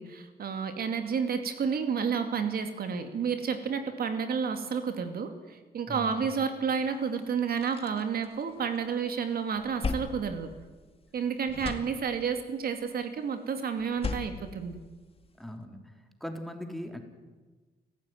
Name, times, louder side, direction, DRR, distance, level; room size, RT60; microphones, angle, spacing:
voice 1, 0.0-10.5 11.1-14.8, right 6 dB, 60° right, 7 dB, 2.5 m, -31 dB
voice 2, 5.9-6.3 11.6-11.7 15.4-15.9 16.2-17.0, equal, ahead, 4 dB, 3.4 m, -39 dB
sound 1, 6.8-6.9 7.3-9.0 9.3-11.2 11.4-12.5 13.8-15.4, left 4 dB, 35° left, 2.2 m, -38 dB
28.5 x 15.5 x 9.3 m, 1.3 s
cardioid pair, 100°, 18 cm